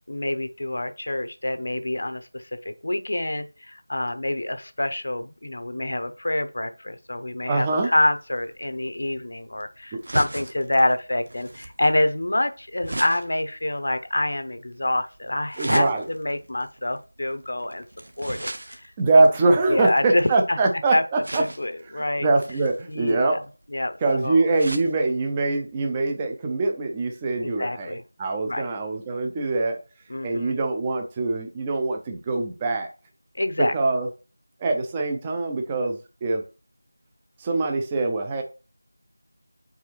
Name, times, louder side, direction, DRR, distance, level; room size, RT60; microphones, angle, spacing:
voice 1, 0.1-17.8 18.2-18.9 19.7-20.6 20.9-21.0 21.4-22.3 22.9-23.4 23.7-24.0 24.2-24.4 27.4-28.0 28.5-28.7 30.1-30.6 33.3-33.7, left 1 dB, 50° left, 9 dB, 0.6 m, -26 dB
voice 2, 7.5-7.9 9.9-10.0 15.6-16.0 19.0-21.4 21.9-23.4 24.0-29.8 30.2-32.9 33.6-34.1 34.6-36.4 37.4-38.4, right 3 dB, 10° right, 3 dB, 0.4 m, -23 dB
sound 1, 7.9-20.5 21.2-21.9 22.4-24.9 25.4-25.5 25.7-25.8, right 1 dB, 35° right, 0.7 m, -36 dB
5.1 x 4.7 x 4.4 m, 0.34 s
figure-of-eight pair, 180°, 0 cm